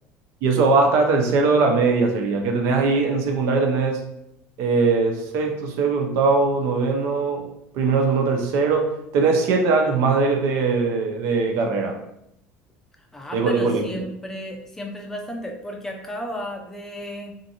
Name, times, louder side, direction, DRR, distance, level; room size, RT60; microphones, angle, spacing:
voice 1, 0.4-4.0 4.6-7.5 7.7-12.0 13.3-13.8, right 4 dB, 65° right, 3 dB, 0.5 m, -20 dB
voice 2, 13.1-17.4, equal, 10° left, 1 dB, 0.4 m, -34 dB
2.5 x 2.4 x 2.7 m, 0.79 s
supercardioid pair, 110°, 5 cm